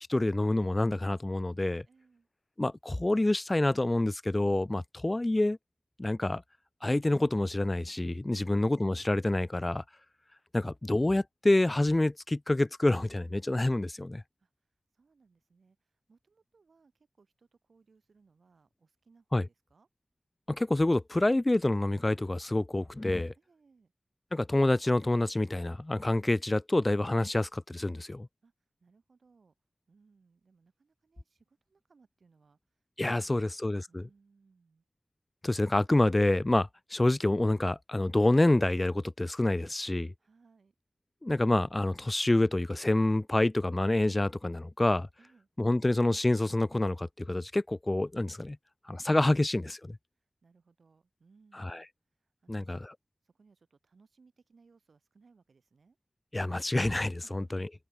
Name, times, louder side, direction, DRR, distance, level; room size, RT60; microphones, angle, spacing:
voice 1, 0.1-1.8 2.6-5.6 6.0-6.4 6.8-9.8 10.5-14.2 19.3-19.5 20.5-23.3 24.3-28.3 33.0-34.0 35.4-40.1 41.2-45.1 45.6-48.6 48.9-50.0 51.6-51.8 52.5-52.9 56.3-57.7, left 1 dB, 30° left, 0.3 m, -27 dB
voice 2, 1.8-2.3 8.3-8.6 14.4-14.5 14.9-19.9 23.3-23.9 28.4-28.5 28.8-29.5 29.9-32.6 33.1-33.6 33.9-34.8 40.2-40.7 45.2-45.5 50.4-51.9 52.4-52.7 53.2-56.0 57.2-57.7, right 4 dB, 80° right, 5.1 m, -65 dB
open air
cardioid pair, 50°, 0 cm